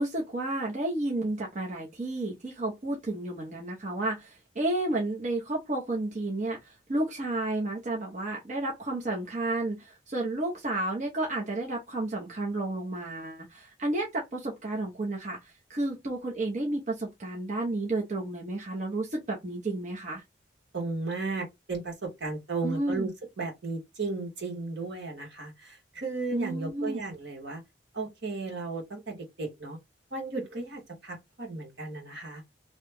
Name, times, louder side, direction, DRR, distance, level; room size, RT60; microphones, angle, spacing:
voice 1, 0.0-20.2 22.6-23.1 26.3-27.0, right 2 dB, 40° right, 0.7 m, -31 dB
voice 2, 20.7-23.1 23.4-27.6 27.9-29.8 30.1-32.4, right 3 dB, 65° right, 1.4 m, -35 dB
2.9 x 2.2 x 3.4 m
head